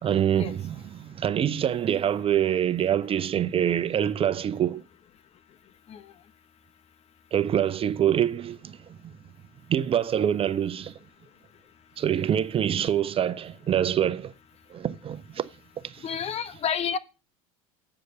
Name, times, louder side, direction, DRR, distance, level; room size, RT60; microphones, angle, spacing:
voice 1, 0.0-4.8 7.3-9.2 9.7-10.9 12.0-14.3 14.7-15.5 15.8-16.1, right 10 dB, 30° right, 0.6 m, -25 dB
voice 2, 16.0-17.0, left 7 dB, 35° left, 0.8 m, -29 dB
7.9 x 5.0 x 6.7 m
hypercardioid pair, 85°, 18 cm